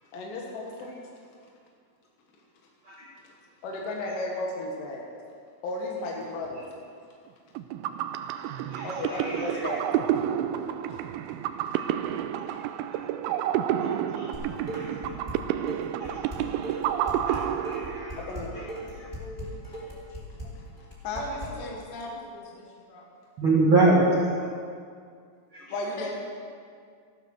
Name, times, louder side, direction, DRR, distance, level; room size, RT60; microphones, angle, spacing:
voice 1, 0.1-0.9 3.6-5.1 5.6-6.6 8.8-10.2 10.5-10.6 10.9-11.0 11.3-11.8 12.5-12.6 18.1-20.6 21.0-21.2 21.7-21.8 22.1-23.0 25.7-26.1, left 2 dB, 65° left, -2 dB, 2.3 m, -36 dB
sound 1, 7.6-18.4, right 10 dB, 85° right, 2.9 m, -30 dB
voice 2, 8.7-9.7 13.8-15.2 16.0-19.1 23.4-24.0 25.5-25.8, right 3 dB, 65° right, -5 dB, 1.2 m, -28 dB
Dishes pots and pans, 14.3-15.4 15.7-21.5, right 1 dB, 10° left, 3.3 m, -38 dB
voice 3, 21.1-22.2 26.0-26.1, left 1 dB, 80° left, -2 dB, 0.9 m, -38 dB
15.5 x 12.0 x 6.3 m, 2.2 s
omnidirectional pair, 6.0 m